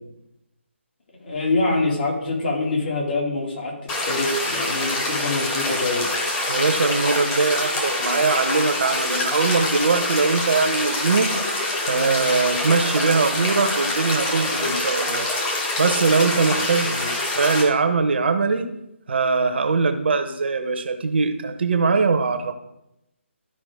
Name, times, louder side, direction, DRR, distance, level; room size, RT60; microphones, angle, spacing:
voice 1, 1.2-6.1 16.8-17.1, left 2 dB, 50° left, -2 dB, 2.7 m, -25 dB
sound 1, 3.9-17.6, left 2 dB, 20° left, 1.5 m, -25 dB
voice 2, 6.5-11.3 11.9-15.3 15.8-16.9 17.3-18.7 19.1-22.5, right 4 dB, 50° right, 8 dB, 0.9 m, -21 dB
12.5 x 4.9 x 3.6 m, 0.85 s
figure-of-eight pair, 150°, 7 cm